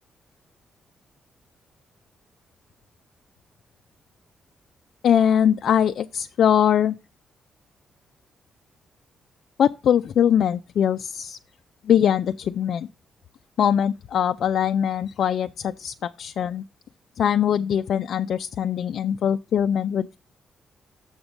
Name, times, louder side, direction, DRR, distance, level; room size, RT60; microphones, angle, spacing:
voice 1, 5.0-7.0 9.6-11.4 11.8-12.9 13.6-16.6 17.2-20.2, left 9 dB, 65° left, 0.3 m, -22 dB
7.1 x 5.1 x 7.1 m
cardioid pair, 130°, 0 cm